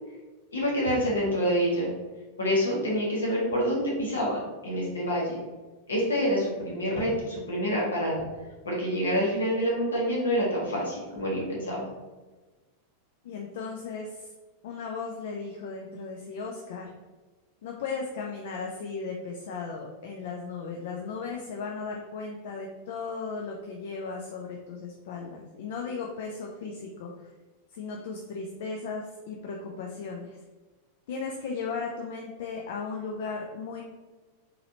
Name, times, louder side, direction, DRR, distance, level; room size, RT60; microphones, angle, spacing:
voice 1, 0.5-1.9 2.4-5.4 5.9-8.2 8.6-11.9, equal, 70° left, -3 dB, 1.4 m, -27 dB
voice 2, 13.2-14.3 14.6-16.9 17.6-27.3 27.7-30.4 31.1-33.8, left 4 dB, 55° left, 1 dB, 0.5 m, -36 dB
4.0 x 4.0 x 2.7 m, 1.3 s
figure-of-eight pair, 90°, 0 cm